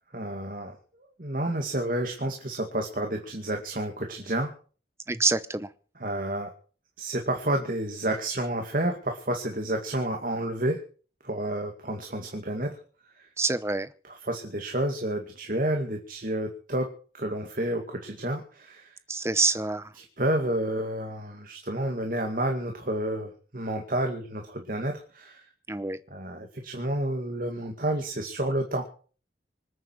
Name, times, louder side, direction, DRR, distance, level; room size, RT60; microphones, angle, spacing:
voice 1, 0.1-4.5 6.0-6.5 7.0-10.8 11.2-12.8 13.2-13.3 14.0-16.9 17.1-19.0 19.3-19.4 19.9-25.5 26.1-28.9, right 1 dB, 50° right, 3 dB, 2.2 m, -30 dB
voice 2, 5.1-5.7 13.4-13.9 19.1-19.9 25.7-26.0, right 3 dB, 15° right, 14 dB, 0.8 m, -26 dB
25.5 x 9.4 x 4.7 m, 0.41 s
head